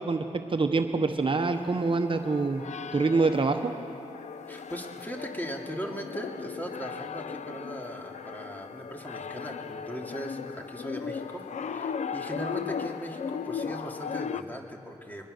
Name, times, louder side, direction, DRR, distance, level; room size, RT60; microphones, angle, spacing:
voice 1, 0.0-2.6 2.9-3.7, right 3 dB, 45° right, 6 dB, 1.0 m, -26 dB
sound 1, 1.4-14.4, left 6 dB, 75° left, 0.6 m, -37 dB
voice 2, 4.5-15.3, equal, 15° left, 1 dB, 2.8 m, -39 dB
22.5 x 21.0 x 6.7 m, 3.0 s
cardioid pair, 65°, 12 cm